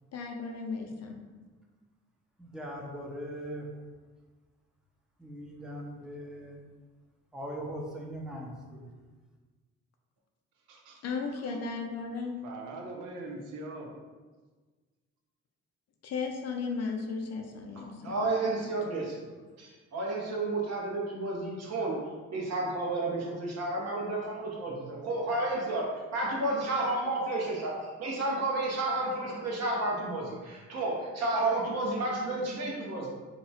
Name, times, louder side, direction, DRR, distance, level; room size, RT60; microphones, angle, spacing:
voice 1, 0.1-1.2 11.0-12.4 16.0-18.3, left 4 dB, 55° left, 2 dB, 0.6 m, -35 dB
voice 2, 2.4-3.7 5.2-6.6 7.3-8.9, equal, ahead, -2 dB, 0.6 m, -40 dB
voice 3, 10.7-11.1 11.3-11.6 12.4-13.9, right 2 dB, 85° right, 1 dB, 0.6 m, -42 dB
voice 4, 17.8-19.1 19.6-22.0 22.3-33.1, right 2 dB, 55° right, -3 dB, 1.1 m, -31 dB
2.8 x 2.3 x 4.1 m, 1.3 s
cardioid pair, 90°, 30 cm